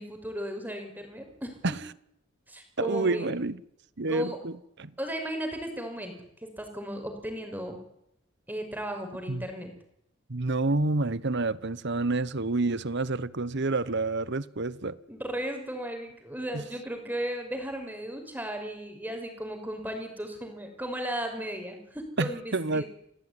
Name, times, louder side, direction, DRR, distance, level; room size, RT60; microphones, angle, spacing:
voice 1, 0.0-1.8 2.5-3.3 4.1-4.4 5.0-6.1 6.4-7.8 8.5-9.7 15.1-22.8, right 1 dB, 10° right, 5.7 m, -35 dB
voice 2, 2.8-3.6 4.0-4.5 4.8-4.9 9.3-9.4 10.3-15.0 16.5-16.6 22.2-22.8, right 3 dB, 55° right, 1.1 m, -28 dB
28.0 x 17.5 x 9.8 m
head